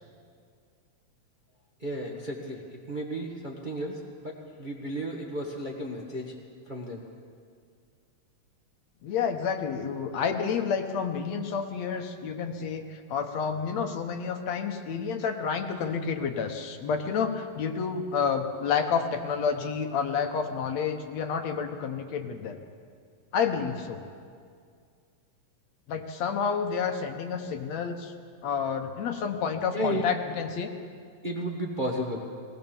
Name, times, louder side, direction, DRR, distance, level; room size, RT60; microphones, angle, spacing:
voice 1, 1.8-2.6 2.9-6.3 6.7-7.0 29.7-30.1 31.2-32.3, equal, 25° right, -1 dB, 1.2 m, -33 dB
voice 2, 9.0-22.6 23.3-24.0 25.9-28.1 28.4-30.7, left 6 dB, 70° left, 5 dB, 2.3 m, -29 dB
19.0 x 19.0 x 7.1 m, 2.2 s
omnidirectional pair, 3.3 m